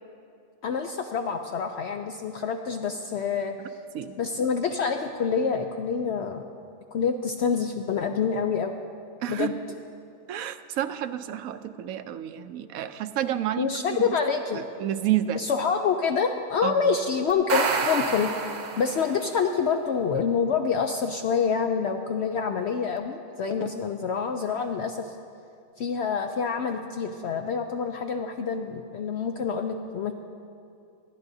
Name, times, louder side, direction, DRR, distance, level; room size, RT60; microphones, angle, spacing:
voice 1, 0.6-3.8 4.2-6.4 6.9-8.7 9.3-9.6 13.6-14.6 15.3-18.3 18.8-25.2 25.8-30.1, left 6 dB, 65° left, 6 dB, 0.7 m, -27 dB
voice 2, 9.2-9.5 10.3-13.7 14.0-14.2 14.5-15.4 16.6-16.8, right 12 dB, 80° right, 10 dB, 1.0 m, -30 dB
sound 1, 17.3-19.3, right 4 dB, 45° right, 0.6 m, -28 dB
20.0 x 13.0 x 2.7 m, 2.5 s
omnidirectional pair, 1.4 m